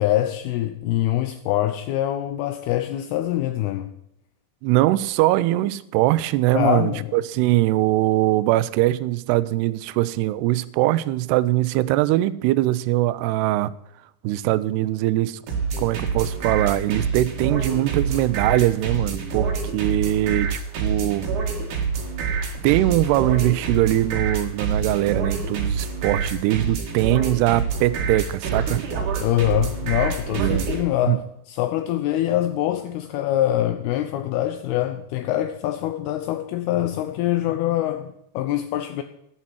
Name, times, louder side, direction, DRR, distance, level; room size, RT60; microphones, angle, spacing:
voice 1, 0.0-3.9 6.5-7.2 29.2-39.0, left 13 dB, 85° left, 2.3 m, -24 dB
voice 2, 4.6-13.7 14.2-15.4 15.8-21.3 22.6-28.8 30.4-30.6 31.1-31.2, right 16 dB, 80° right, 2.4 m, -21 dB
sound 1, 15.5-30.8, right 5 dB, 50° right, 3.0 m, -26 dB
11.5 x 8.6 x 6.0 m
omnidirectional pair, 5.3 m